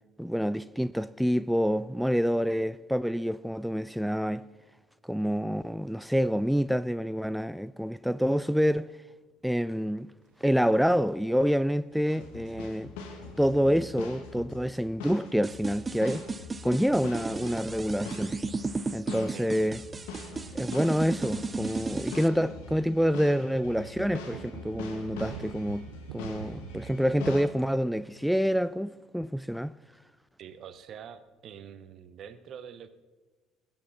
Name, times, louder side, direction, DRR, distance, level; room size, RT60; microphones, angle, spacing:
voice 1, 0.2-4.5 5.1-8.9 9.4-10.1 10.4-12.9 13.4-16.3 16.6-18.3 18.9-19.8 20.5-25.9 26.1-29.7, equal, ahead, 0.3 m, -27 dB
sound 1, 10.2-10.5 10.7-27.4, right 10 dB, 75° right, 0.5 m, -50 dB
sound 2, 12.1-27.4, left 4 dB, 65° left, 2.0 m, -43 dB
sound 3, 15.4-22.3, right 3 dB, 25° right, 0.7 m, -34 dB
voice 2, 19.3-19.8 30.4-32.9, right 8 dB, 50° right, 1.0 m, -46 dB
20.5 x 9.0 x 4.2 m
figure-of-eight pair, 55°, 0 cm